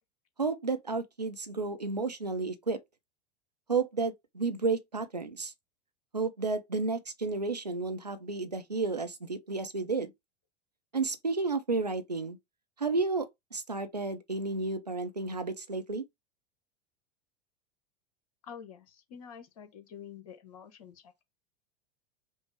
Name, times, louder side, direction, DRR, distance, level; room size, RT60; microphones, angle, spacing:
voice 1, 0.4-2.8 3.7-5.5 6.1-10.1 10.9-12.4 12.8-16.0, right 3 dB, 90° right, 0.6 m, -32 dB
voice 2, 18.4-21.2, left 8 dB, 60° left, 1.1 m, -48 dB
5.3 x 2.1 x 3.3 m
figure-of-eight pair, 80°, 20 cm